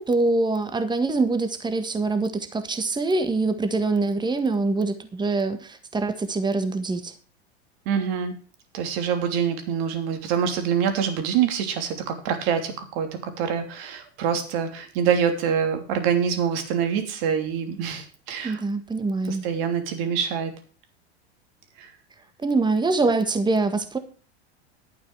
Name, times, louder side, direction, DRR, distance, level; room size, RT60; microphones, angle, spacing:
voice 1, 0.0-7.1 18.4-19.4 22.4-24.0, right 3 dB, 15° right, 9 dB, 1.7 m, -24 dB
voice 2, 7.8-8.4 8.7-18.6 19.3-20.5 21.8-21.9, right 7 dB, 55° right, 6 dB, 3.1 m, -25 dB
11.5 x 9.1 x 4.8 m, 0.39 s
hypercardioid pair, 90°, 33 cm